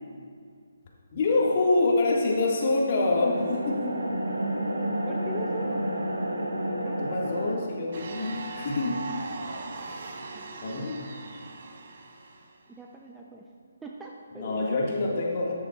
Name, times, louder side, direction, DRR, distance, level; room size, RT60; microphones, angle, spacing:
voice 1, 1.1-4.0 7.0-9.0 10.6-11.0 14.4-15.5, left 2 dB, 40° left, -2 dB, 1.8 m, -26 dB
sound 1, 2.9-7.6, right 1 dB, 85° right, 1.2 m, -30 dB
voice 2, 5.1-5.8 6.8-7.2 10.3-10.8 12.7-13.4 13.8-15.0, right 2 dB, 5° right, -2 dB, 0.5 m, -42 dB
sound 2, 7.9-12.6, right 3 dB, 45° right, 1.0 m, -39 dB
13.0 x 10.0 x 2.4 m, 2.1 s
figure-of-eight pair, 145°, 0 cm